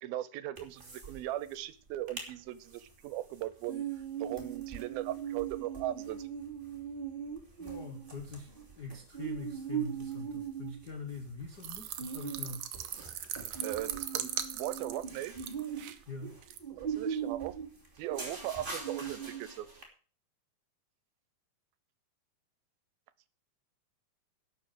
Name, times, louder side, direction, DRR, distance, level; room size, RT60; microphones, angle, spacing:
voice 1, 0.0-3.8 4.2-6.3 13.6-15.3 16.7-17.5 18.0-19.7, right 14 dB, 90° right, 16 dB, 2.7 m, -38 dB
sound 1, 0.6-1.2 1.5-1.6 1.9-2.3 2.7-19.8, right 7 dB, 15° right, 2.4 m, -40 dB
voice 2, 7.6-12.7 16.1-16.4, left 3 dB, 65° left, 4 dB, 1.0 m, -44 dB
sound 2, 11.6-16.0 16.4-16.6, right 11 dB, 70° right, 1.9 m, -39 dB
11.5 x 6.8 x 7.8 m, 0.39 s
omnidirectional pair, 4.2 m